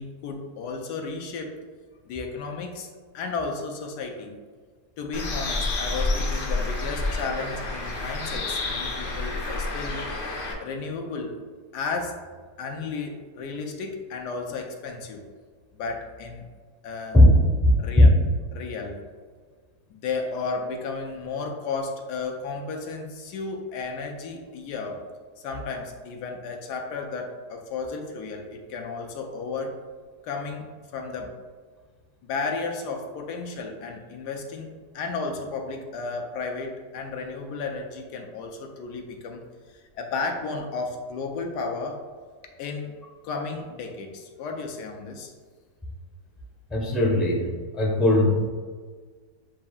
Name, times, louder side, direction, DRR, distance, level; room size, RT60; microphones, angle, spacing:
voice 1, 0.0-1.6 2.1-2.9 3.1-4.4 5.0-10.0 10.6-11.3 11.7-12.2 12.6-15.2 15.7-16.5 16.8-17.2 17.8-18.1 18.5-19.0 19.9-25.0 25.4-29.7 30.2-31.3 32.2-39.4 40.0-42.0 42.6-43.0 43.2-45.3, left 4 dB, 90° left, 3 dB, 1.2 m, -33 dB
Bird, 5.1-10.5, left 2 dB, 55° left, 0.6 m, -29 dB
voice 2, 17.1-18.2 46.7-47.4 47.7-48.5, left 1 dB, ahead, -2 dB, 0.7 m, -18 dB
7.3 x 2.7 x 2.3 m, 1.5 s
omnidirectional pair, 1.7 m